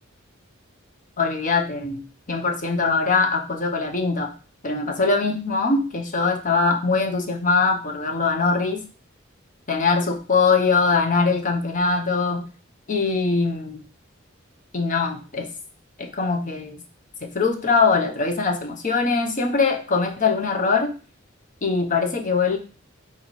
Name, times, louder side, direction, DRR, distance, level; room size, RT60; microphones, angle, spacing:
voice 1, 1.2-2.0 2.3-4.3 4.6-8.8 9.7-12.4 12.9-13.8 14.7-15.5 16.0-16.8 17.2-20.9 21.6-22.6, left 4 dB, 40° left, 3 dB, 0.8 m, -22 dB
4.2 x 3.1 x 4.1 m, 0.36 s
head